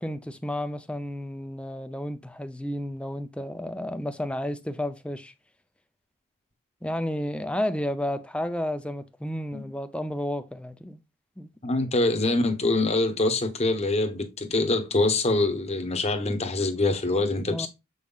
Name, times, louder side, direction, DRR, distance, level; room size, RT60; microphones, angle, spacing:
voice 1, 0.0-5.3 6.8-11.0 11.4-11.5 17.5-17.7, left 1 dB, 5° left, 0.5 m, -32 dB
voice 2, 11.6-17.7, left 2 dB, 30° left, 0.9 m, -24 dB
7.4 x 5.4 x 2.4 m
head